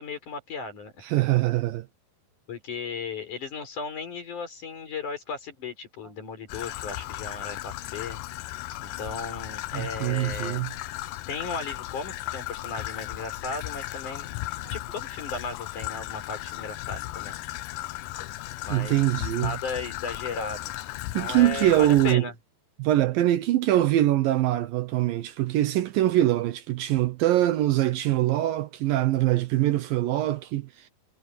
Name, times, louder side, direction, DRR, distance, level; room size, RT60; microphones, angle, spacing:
voice 1, 0.0-1.0 2.5-8.2 8.8-10.6 11.3-14.3 14.7-17.3 18.6-20.7 21.1-22.3, left 4 dB, 50° left, 6.2 m, -36 dB
voice 2, 1.0-1.9 9.7-10.7 14.6-14.7 18.7-19.6 21.1-22.3 22.8-30.9, right 14 dB, 75° right, 2.4 m, -23 dB
Traffic noise roadway noise / Trickle dribble, 6.5-22.2, left 16 dB, 80° left, 2.1 m, -36 dB
omnidirectional pair, 4.5 m